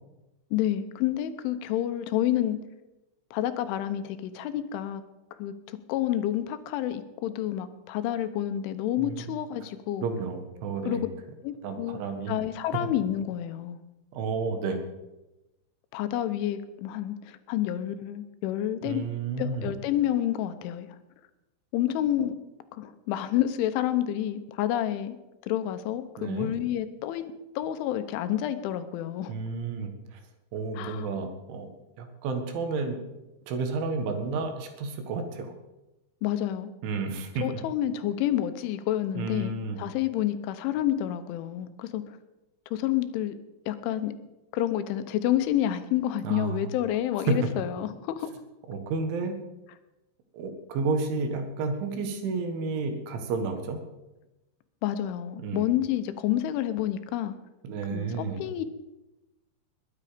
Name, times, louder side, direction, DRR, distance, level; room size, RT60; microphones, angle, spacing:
voice 1, 0.5-2.6 3.3-5.0 5.4-10.1 10.9-11.0 11.4-12.0 12.3-13.8 15.9-19.0 19.4-20.9 21.7-22.4 22.7-25.2 25.5-29.3 30.8-31.1 36.2-36.7 37.4-42.0 42.7-43.3 43.7-44.1 44.5-48.3 54.8-57.3 57.9-58.7, left 12 dB, 90° left, 11 dB, 3.4 m, -29 dB
voice 2, 10.0-11.0 11.6-12.4 12.8-12.9 14.1-14.8 18.8-19.7 26.2-26.5 29.3-30.2 30.5-31.7 32.0-33.0 33.5-35.5 36.8-37.5 39.2-39.8 46.2-46.6 48.7-49.4 50.3-53.8 55.4-55.7 57.6-58.4, right 4 dB, 80° right, 6 dB, 4.1 m, -31 dB
21.0 x 9.6 x 5.1 m, 1.0 s
omnidirectional pair, 5.4 m